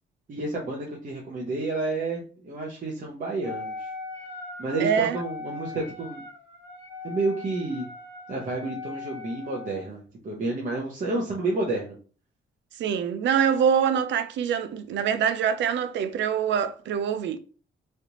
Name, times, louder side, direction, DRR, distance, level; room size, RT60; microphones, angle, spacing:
voice 1, 0.3-3.9 4.6-6.2 7.0-7.9 8.3-12.0, right 2 dB, 40° right, 0.9 m, -30 dB
Wind instrument woodwind instrument, 3.4-9.9, left 3 dB, 55° left, 1.4 m, -40 dB
voice 2, 4.8-5.2 12.8-17.4, right 8 dB, 65° right, 0.5 m, -24 dB
3.3 x 2.4 x 2.9 m
cardioid pair, 90°, 20 cm